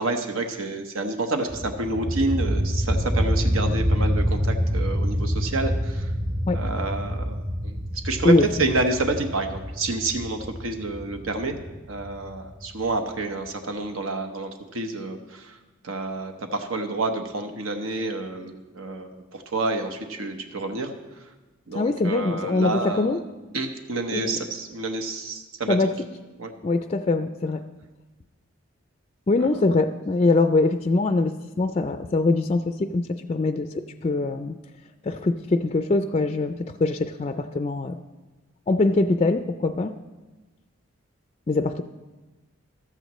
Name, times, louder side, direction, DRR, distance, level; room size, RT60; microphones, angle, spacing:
voice 1, 0.0-6.1 6.5-7.8 8.0-11.6 11.9-15.6 15.8-20.9 21.7-23.2 23.5-25.8 26.4-26.5 29.4-29.5, right 2 dB, 85° right, 5 dB, 1.1 m, -29 dB
sound 1, 1.5-13.1, equal, 50° right, 1.8 m, -27 dB
voice 2, 21.7-23.2 24.1-24.4 25.7-25.9 26.6-27.6 29.3-34.6 35.0-36.5 36.8-38.0 38.7-39.9 41.5-41.8, left 3 dB, 30° left, 8 dB, 0.3 m, -23 dB
14.5 x 13.0 x 3.1 m, 1.2 s
head